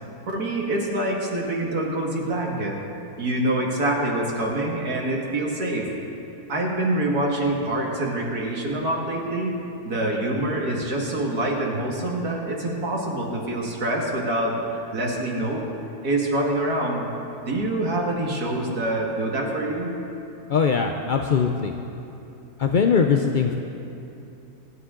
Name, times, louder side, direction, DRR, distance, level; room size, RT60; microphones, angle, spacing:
voice 1, 0.3-2.8 3.2-5.9 6.5-9.5 9.8-14.6 14.9-15.6 16.0-17.1 17.4-19.9, right 1 dB, 80° right, -2 dB, 2.5 m, -25 dB
voice 2, 20.5-21.8 22.6-23.6, left 6 dB, 60° left, 4 dB, 0.5 m, -21 dB
27.0 x 9.9 x 3.8 m, 2.8 s
omnidirectional pair, 1.6 m